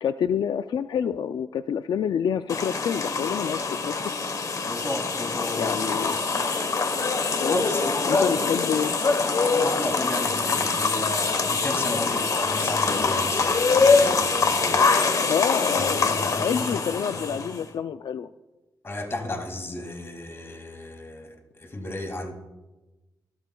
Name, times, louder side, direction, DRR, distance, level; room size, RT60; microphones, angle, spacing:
voice 1, 0.0-4.2 5.5-6.1 7.4-7.7 8.1-8.9 15.3-18.3, left 8 dB, 80° left, 11 dB, 0.4 m, -27 dB
sound 1, 2.5-17.6, left 4 dB, 50° left, 1.1 m, -24 dB
voice 2, 4.6-5.7 7.4-8.4 9.4-14.9 15.8-16.6 18.8-22.3, left 1 dB, 35° left, 3 dB, 2.2 m, -33 dB
25.0 x 13.0 x 2.3 m, 1.1 s
wide cardioid pair, 140°, 8 cm